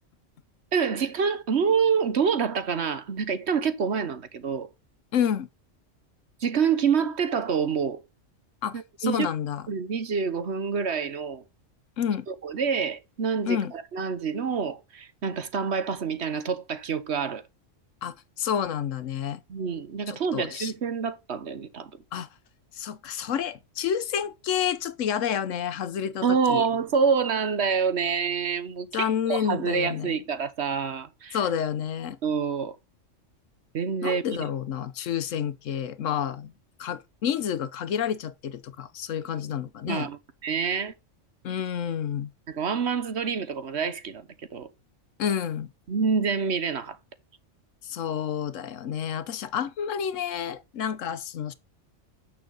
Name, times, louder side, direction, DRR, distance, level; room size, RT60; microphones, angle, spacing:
voice 1, 0.7-4.7 6.4-8.0 8.7-9.3 9.7-11.4 12.3-17.4 19.5-21.9 26.2-31.4 32.2-32.7 33.7-34.5 39.9-40.9 42.5-44.7 45.9-47.0, right 6 dB, 60° right, 1.3 m, -27 dB
voice 2, 5.1-5.5 8.6-9.7 12.0-12.3 13.5-13.7 18.0-19.4 20.1-20.7 22.1-22.3 22.7-26.6 28.9-30.2 31.3-32.2 34.0-36.5 36.8-40.1 41.4-42.3 45.2-45.7 47.8-51.5, left 8 dB, 80° left, 1.2 m, -29 dB
9.0 x 6.4 x 3.9 m
omnidirectional pair, 1.3 m